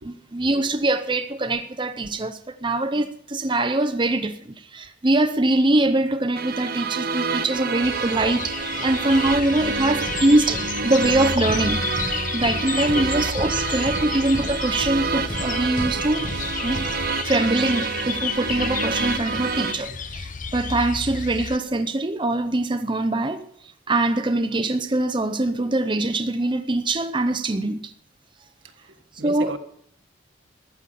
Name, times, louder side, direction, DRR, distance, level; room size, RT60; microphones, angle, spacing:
voice 1, 0.0-11.8 12.3-16.3 16.6-16.9 17.2-23.5 23.9-27.9 29.2-29.6, right 2 dB, 25° right, 0.7 m, -23 dB
sound 1, 6.3-19.7, right 5 dB, 55° right, 1.3 m, -28 dB
sound 2, 7.8-21.6, left 6 dB, 45° left, 0.8 m, -31 dB
sound 3, 9.6-17.6, equal, 25° left, 1.5 m, -36 dB
voice 2, 28.6-29.6, right 2 dB, 75° right, 1.6 m, -38 dB
14.5 x 9.8 x 7.1 m
head